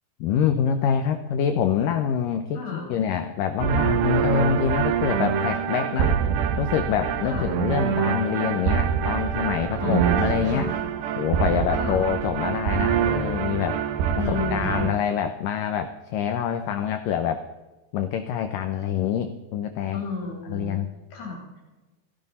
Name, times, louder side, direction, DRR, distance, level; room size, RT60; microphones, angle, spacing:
voice 1, 0.2-2.6 2.9-6.2 6.6-10.7 11.2-13.8 14.3-17.4 17.9-20.0 20.5-20.9, left 8 dB, 85° left, 8 dB, 1.9 m, -25 dB
voice 2, 2.5-2.9 7.3-7.5 9.8-10.8 11.7-12.0 14.2-14.9 19.9-20.8 21.1-21.6, left 4 dB, 70° left, -1 dB, 5.3 m, -31 dB
sound 1, 3.6-14.9, right 8 dB, 85° right, 3.3 m, -25 dB
16.5 x 15.5 x 4.2 m, 1.1 s
omnidirectional pair, 4.8 m